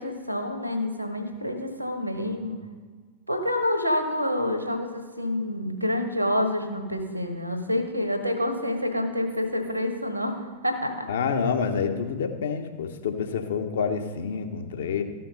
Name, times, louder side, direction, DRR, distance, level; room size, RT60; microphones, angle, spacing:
voice 1, 0.0-2.6 3.3-11.1, left 1 dB, 90° right, 6 dB, 1.3 m, -28 dB
voice 2, 11.1-15.0, left 6 dB, 60° left, 7 dB, 1.0 m, -28 dB
13.5 x 5.7 x 5.2 m, 1.5 s
figure-of-eight pair, 90°, 0 cm